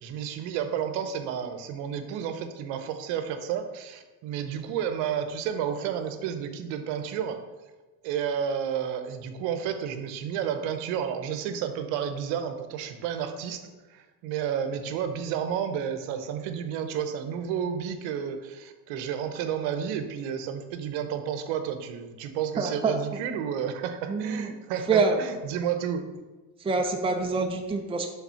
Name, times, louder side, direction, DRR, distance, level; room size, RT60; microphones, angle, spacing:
voice 1, 0.0-7.4 8.0-26.1, right 8 dB, 70° right, 8 dB, 0.9 m, -31 dB
voice 2, 22.6-23.0 24.1-24.5 24.9-25.2 26.6-28.1, right 4 dB, 10° right, 3 dB, 0.6 m, -26 dB
5.8 x 3.8 x 5.6 m, 1.2 s
supercardioid pair, 90°, 46 cm